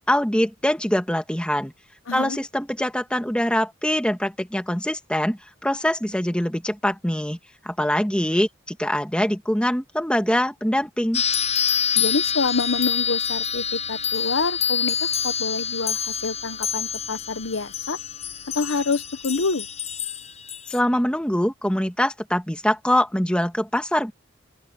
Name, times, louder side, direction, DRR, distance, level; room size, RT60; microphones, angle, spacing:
voice 1, 0.1-1.7 2.1-7.4 7.6-11.2 20.7-24.1, left 1 dB, 5° left, 1.8 m, -23 dB
voice 2, 2.1-2.4 12.0-18.0 18.5-19.7, left 4 dB, 75° left, 1.0 m, -27 dB
sound 1, 11.1-20.8, left 8 dB, 30° left, 1.0 m, -26 dB
open air
head